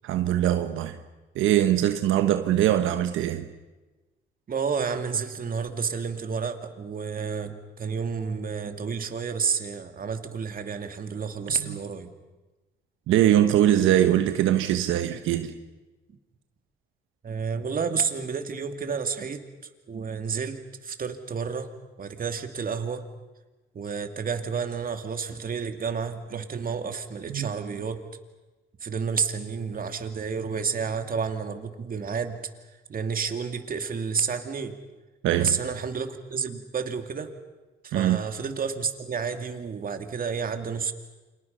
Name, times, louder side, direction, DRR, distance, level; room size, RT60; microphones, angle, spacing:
voice 1, 0.0-1.0 1.3-3.5 11.6-11.8 13.1-15.5 27.3-27.5 35.2-35.6 37.9-38.2, right 12 dB, 90° right, 1.2 m, -22 dB
voice 2, 4.5-12.1 17.2-19.4 19.9-21.7 22.0-23.1 23.7-28.0 28.8-32.4 32.9-34.7 35.4-37.3 37.8-40.9, right 6 dB, 45° right, 2.6 m, -30 dB
29.5 x 26.0 x 5.6 m
cardioid pair, 90°, 20 cm